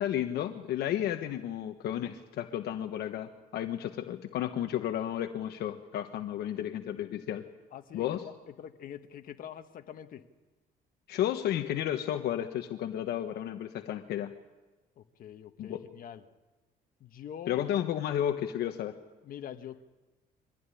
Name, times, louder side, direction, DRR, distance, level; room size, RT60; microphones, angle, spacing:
voice 1, 0.0-7.5 7.9-8.2 11.1-14.3 15.6-15.8 17.5-18.9, left 11 dB, 70° left, 6 dB, 1.2 m, -32 dB
voice 2, 7.7-10.2 15.0-16.2 17.0-17.7 19.2-19.9, left 9 dB, 55° left, 7 dB, 1.6 m, -44 dB
24.0 x 15.0 x 10.0 m, 1.2 s
cardioid pair, 110°, 17 cm